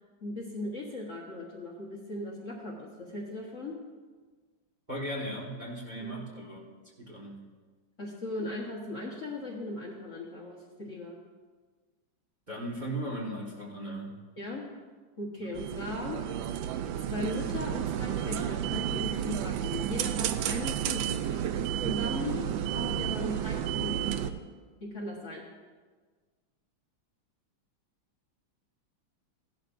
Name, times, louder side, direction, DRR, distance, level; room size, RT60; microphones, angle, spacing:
voice 1, 0.2-3.7 6.0-6.2 8.0-11.1 14.4-14.6 15.2-16.2 17.1-21.3 21.8-22.4 22.7-24.4 24.8-25.5, left 2 dB, 40° left, -3 dB, 1.5 m, -38 dB
voice 2, 4.9-6.6 7.0-7.3 12.5-14.1 15.4-15.5, right 1 dB, 25° right, -4 dB, 1.7 m, -37 dB
sound 1, 15.6-24.3, right 10 dB, 75° right, 1.2 m, -31 dB
16.0 x 11.5 x 2.6 m, 1.4 s
omnidirectional pair, 2.3 m